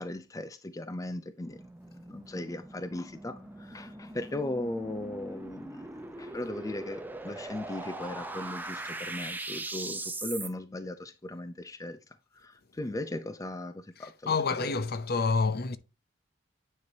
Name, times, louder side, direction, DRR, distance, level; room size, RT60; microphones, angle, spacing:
voice 1, 0.0-1.6 2.1-12.0 12.3-14.7, left 1 dB, 15° left, 0.4 m, -38 dB
sound 1, 1.4-10.5, right 2 dB, 10° right, 0.7 m, -41 dB
voice 2, 14.0-15.8, left 4 dB, 55° left, 0.7 m, -28 dB
9.5 x 4.9 x 2.8 m
head